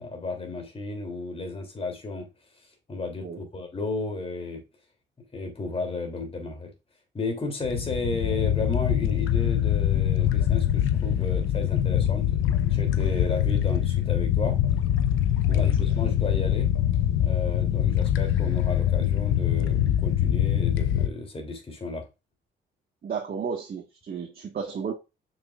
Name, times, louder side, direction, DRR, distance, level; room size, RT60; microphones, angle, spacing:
voice 1, 0.0-2.3 2.9-4.6 5.3-6.7 7.1-14.6 15.5-16.7 17.2-22.0, left 3 dB, 30° left, 3.2 m, -33 dB
sound 1, 7.6-21.1, left 11 dB, 80° left, 0.8 m, -24 dB
voice 2, 15.4-15.9 23.0-24.9, right 6 dB, 50° right, 1.7 m, -33 dB
6.7 x 6.5 x 2.5 m
cardioid pair, 90°, 20 cm